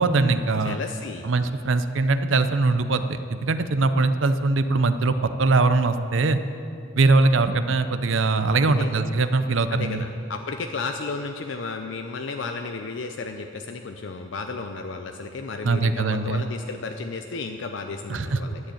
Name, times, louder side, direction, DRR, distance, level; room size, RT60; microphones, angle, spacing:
voice 1, 0.0-0.8 1.2-6.4 7.0-10.1 15.6-16.5 18.1-18.4, right 3 dB, 70° right, 11 dB, 0.6 m, -21 dB
voice 2, 0.6-1.3 8.6-8.9 9.7-18.6, left 4 dB, 65° left, 5 dB, 0.6 m, -33 dB
12.0 x 7.8 x 8.4 m, 2.7 s
head